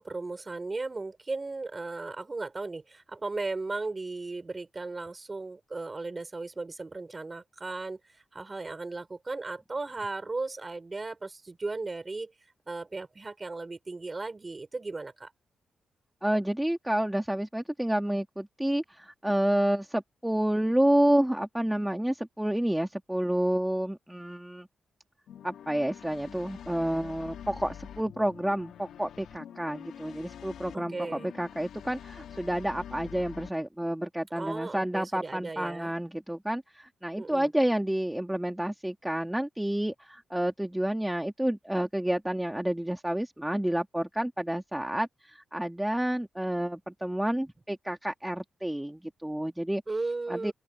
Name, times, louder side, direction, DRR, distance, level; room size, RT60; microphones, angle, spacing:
voice 1, 0.0-12.3 12.7-15.3 30.7-31.3 34.3-35.9 37.2-37.5 49.9-50.5, right 3 dB, 25° right, 5.3 m, -36 dB
voice 2, 16.2-24.7 25.4-49.8 50.3-50.5, right 1 dB, 5° right, 2.4 m, -29 dB
sound 1, 25.3-33.5, left 9 dB, 85° left, 3.0 m, -46 dB
open air
cardioid pair, 110°, 0 cm